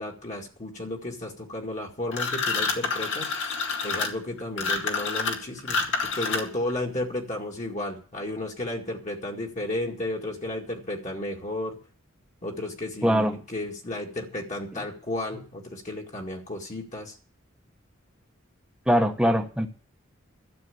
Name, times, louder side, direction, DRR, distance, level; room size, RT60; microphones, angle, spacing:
voice 1, 0.0-3.6 3.8-11.8 12.4-17.2, left 1 dB, 35° left, 2.2 m, -33 dB
sound 1, 2.1-6.7, left 4 dB, 65° left, 2.2 m, -28 dB
voice 2, 13.0-13.3 18.9-19.7, equal, 5° right, 1.1 m, -22 dB
12.5 x 7.7 x 8.5 m
head